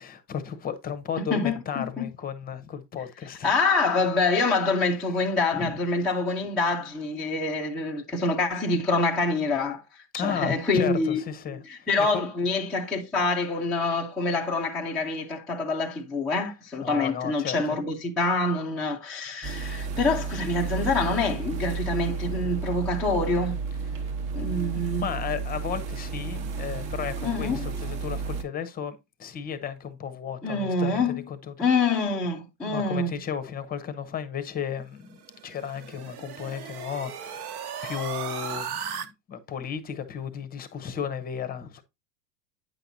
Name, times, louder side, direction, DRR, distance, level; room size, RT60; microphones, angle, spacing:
voice 1, 0.0-3.5 5.5-5.7 10.1-12.2 16.8-17.8 23.9-31.5 32.7-41.8, left 8 dB, 20° left, 0.7 m, -34 dB
voice 2, 1.2-2.1 3.4-9.8 10.1-23.6 24.3-25.0 27.2-27.7 30.4-31.2 31.6-33.1, left 3 dB, ahead, 0.3 m, -26 dB
sound 1, 19.4-28.4, right 4 dB, 40° right, 1.0 m, -32 dB
sound 2, 35.1-39.1, right 8 dB, 60° right, 1.1 m, -36 dB
9.0 x 5.8 x 2.6 m
hypercardioid pair, 125°, 50 cm